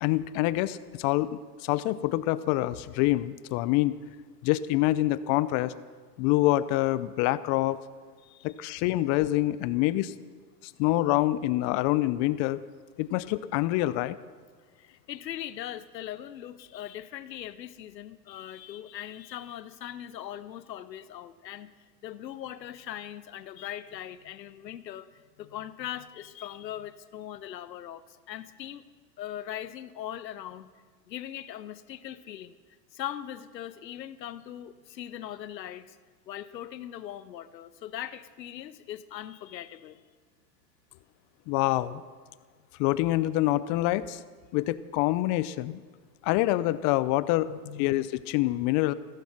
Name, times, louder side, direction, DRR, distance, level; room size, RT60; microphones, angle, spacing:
voice 1, 0.0-4.0 4.4-5.7 6.2-7.8 8.4-10.1 10.6-12.6 13.0-14.2 41.5-42.0 42.8-44.2 44.5-45.8 46.2-47.5 47.8-48.9, left 16 dB, 35° left, 17 dB, 0.6 m, -26 dB
voice 2, 14.8-21.7 22.0-28.8 29.2-30.7 31.1-32.6 32.9-36.0 36.3-40.0 47.5-47.9, left 11 dB, 80° left, 15 dB, 0.9 m, -40 dB
15.5 x 14.5 x 5.9 m, 1.5 s
hypercardioid pair, 105°, 50 cm